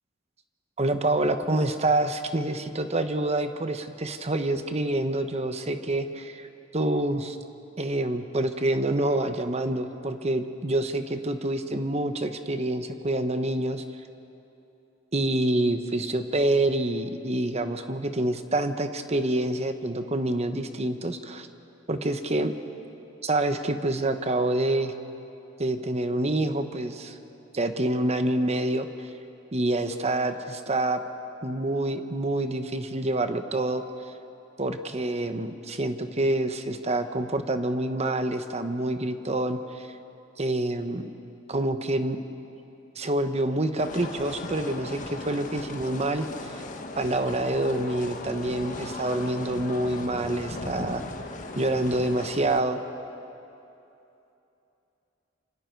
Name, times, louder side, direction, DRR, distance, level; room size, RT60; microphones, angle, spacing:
voice 1, 0.8-6.5 6.7-7.4 7.8-13.8 15.1-21.5 21.9-22.5 23.2-24.9 25.6-27.2 27.5-29.1 29.5-31.0 31.4-33.8 34.6-39.9 40.4-41.0 41.5-42.2 42.9-46.6 47.0-51.0 51.6-52.8, right 1 dB, 35° right, 8 dB, 1.1 m, -27 dB
sound 1, 43.8-52.6, left 2 dB, 40° left, 1.4 m, -37 dB
28.0 x 26.0 x 4.7 m, 2.9 s
head